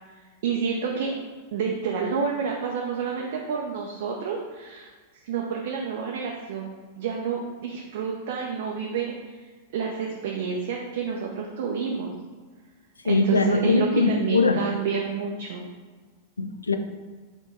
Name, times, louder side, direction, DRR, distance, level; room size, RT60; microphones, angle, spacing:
voice 1, 0.4-1.2 1.5-4.9 5.2-6.7 7.0-9.2 9.7-12.1 13.0-15.7, right 6 dB, 55° right, -1 dB, 0.5 m, -29 dB
voice 2, 13.0-14.6 16.4-16.8, left 3 dB, 80° left, 7 dB, 0.4 m, -22 dB
4.3 x 2.9 x 4.1 m, 1.4 s
figure-of-eight pair, 95°, 0 cm